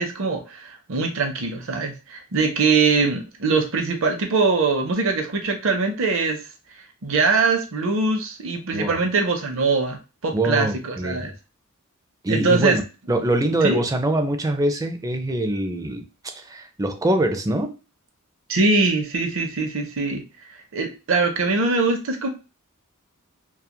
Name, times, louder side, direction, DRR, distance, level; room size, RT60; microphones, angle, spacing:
voice 1, 0.0-6.4 7.0-11.3 12.3-12.8 13.6-13.8 18.5-20.2 20.7-22.3, right 4 dB, 65° right, 5 dB, 0.6 m, -22 dB
voice 2, 10.3-11.3 12.2-12.8 13.1-17.8, right 1 dB, 15° right, 6 dB, 0.4 m, -24 dB
2.9 x 2.3 x 2.2 m, 0.30 s
head